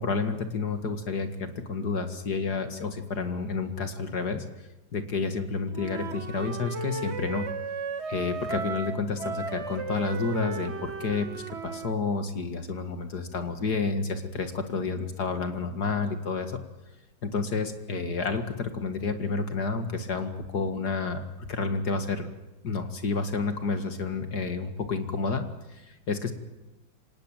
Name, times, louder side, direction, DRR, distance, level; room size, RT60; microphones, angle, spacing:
voice 1, 0.0-4.4 4.9-7.5 8.1-16.6 17.2-22.3 22.6-25.4 25.7-26.3, left 4 dB, 55° left, 8 dB, 2.5 m, -30 dB
Wind instrument woodwind instrument, 5.7-12.0, right 4 dB, 35° right, 1.5 m, -35 dB
25.5 x 18.5 x 9.1 m, 1.0 s
omnidirectional pair, 2.1 m